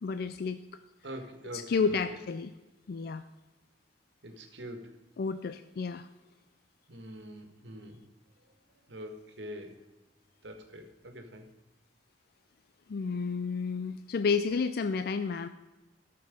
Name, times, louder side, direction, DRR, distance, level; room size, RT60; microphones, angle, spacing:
voice 1, 0.0-0.6 1.5-2.5 2.9-3.2 5.2-6.1 12.9-15.5, left 5 dB, 60° left, 11 dB, 0.4 m, -31 dB
voice 2, 1.0-2.0 4.2-5.0 6.9-8.0 8.9-9.8 10.4-11.5, equal, 85° right, 5 dB, 1.5 m, -44 dB
13.5 x 6.8 x 5.2 m, 1.1 s
head